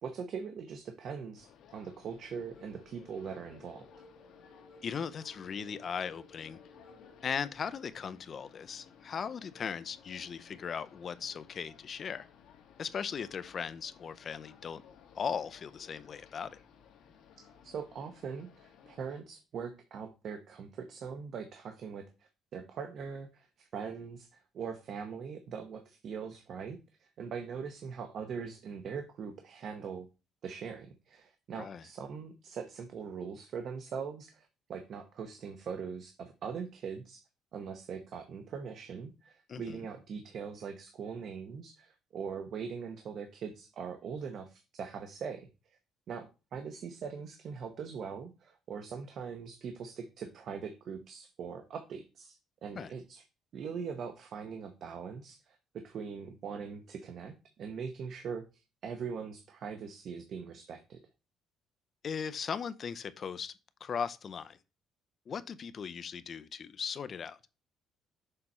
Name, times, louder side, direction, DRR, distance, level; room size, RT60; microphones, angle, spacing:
voice 1, 0.0-3.8 17.6-22.0 22.5-30.1 30.4-37.2 37.5-45.5 46.1-46.3 46.5-53.2 53.5-57.3 57.6-58.4 58.8-61.0, right 6 dB, 50° right, 0.8 m, -41 dB
sound 1, 1.3-19.2, left 8 dB, 65° left, 1.2 m, -59 dB
sound 2, 2.3-7.3, left 1 dB, 20° left, 2.9 m, -58 dB
voice 2, 4.8-6.6 7.2-12.3 12.8-14.8 15.1-16.6 31.6-31.8 39.5-39.8 52.7-52.9 62.0-63.5 63.8-64.6 65.3-67.4, left 7 dB, 40° left, 0.5 m, -38 dB
6.8 x 4.1 x 4.3 m
cardioid pair, 140°, 0 cm